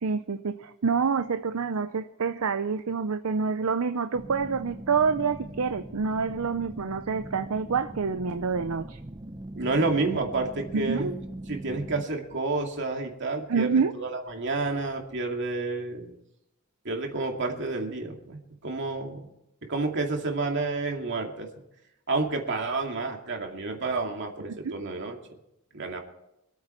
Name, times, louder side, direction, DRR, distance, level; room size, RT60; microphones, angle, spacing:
voice 1, 0.0-9.0 10.7-11.2 13.5-13.9 24.5-24.7, right 5 dB, 75° right, 10 dB, 0.6 m, -27 dB
sound 1, 4.1-12.0, right 1 dB, 20° right, 0.6 m, -41 dB
voice 2, 9.5-11.1 11.5-16.1 16.8-19.2 19.6-21.5 22.1-25.2 25.7-26.0, right 3 dB, 55° right, 2 dB, 2.4 m, -30 dB
25.0 x 9.0 x 4.5 m, 0.85 s
head